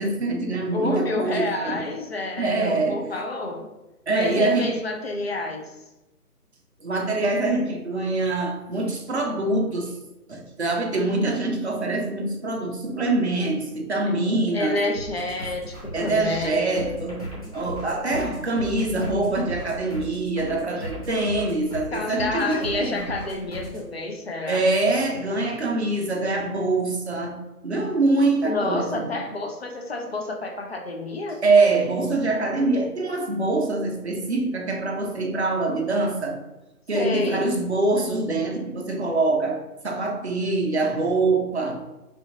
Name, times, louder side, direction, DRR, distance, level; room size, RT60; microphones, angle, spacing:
voice 1, 0.0-1.8 2.4-3.1 4.1-4.7 6.8-10.0 10.3-14.8 15.9-23.0 24.5-29.1 31.4-36.4 36.9-41.8, right 2 dB, 45° right, 1 dB, 0.7 m, -24 dB
voice 2, 0.7-3.7 4.1-5.7 14.5-16.7 21.9-24.6 28.4-31.4 36.9-37.4, left 2 dB, 45° left, 1 dB, 0.5 m, -29 dB
sound 1, 14.9-23.9, equal, 25° left, 1.0 m, -37 dB
5.0 x 2.5 x 3.8 m, 1.0 s
hypercardioid pair, 170°, 47 cm